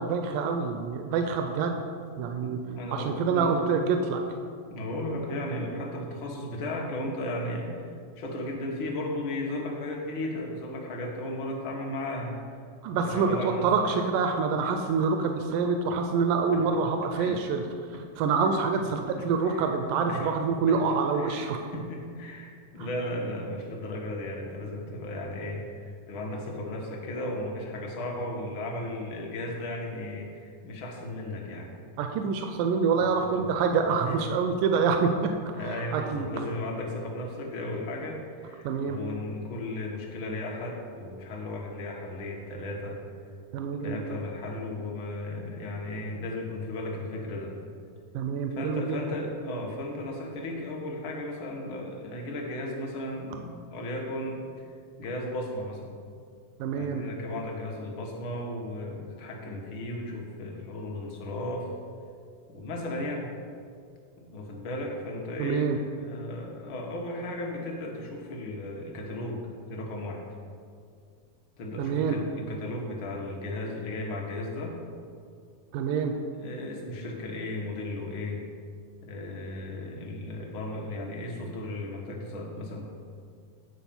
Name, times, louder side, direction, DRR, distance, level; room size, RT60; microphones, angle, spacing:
voice 1, 0.0-1.8 2.2-2.6 2.9-4.2 12.8-17.6 18.2-21.6 32.0-35.1 35.6-36.3 38.6-39.0 43.5-44.0 48.1-49.0 56.6-57.0 65.4-65.8 71.8-72.2 75.7-76.1, right 5 dB, 90° right, 5 dB, 2.2 m, -26 dB
voice 2, 2.4-3.6 4.7-7.8 8.2-12.4 13.0-13.9 16.5-16.8 17.2-17.4 17.9-18.0 18.8-18.9 19.2-19.7 20.0-20.3 20.7-31.7 32.6-33.6 34.0-34.2 34.7-34.9 35.5-43.0 43.8-47.6 48.5-54.6 55.0-55.9 56.7-61.7 62.5-63.3 64.2-70.2 71.6-74.8 76.4-78.4 79.0-82.8, left 1 dB, 50° left, -1 dB, 1.6 m, -35 dB
9.0 x 4.6 x 7.0 m, 2.2 s
omnidirectional pair, 3.6 m